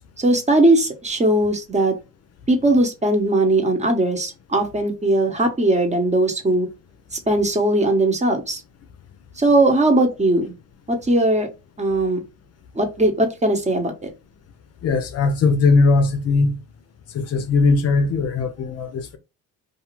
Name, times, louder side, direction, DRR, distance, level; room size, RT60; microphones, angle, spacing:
voice 1, 0.2-1.9 2.5-6.7 7.1-8.6 9.4-10.5 10.9-11.5 11.8-12.2 12.7-14.1, right 2 dB, 25° right, 0.8 m, -19 dB
voice 2, 14.8-16.6 17.1-19.2, left 3 dB, 55° left, 0.6 m, -19 dB
2.5 x 2.3 x 3.0 m
cardioid pair, 90°, 30 cm